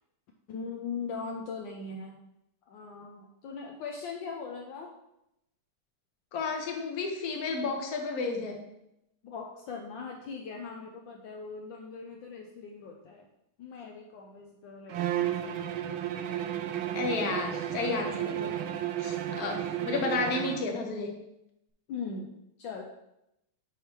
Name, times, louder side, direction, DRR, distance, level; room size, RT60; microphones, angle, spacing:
voice 1, 0.5-2.2 2.7-4.9 9.2-13.3 13.6-15.6 21.9-22.3 22.6-22.8, left 5 dB, 75° left, 1 dB, 1.3 m, -40 dB
voice 2, 6.3-8.6 16.9-18.6 19.0-21.2, left 3 dB, 50° left, 2 dB, 1.3 m, -32 dB
Bowed string instrument, 14.9-20.7, right 11 dB, 75° right, 1.3 m, -33 dB
9.0 x 3.4 x 4.3 m, 0.84 s
omnidirectional pair, 2.3 m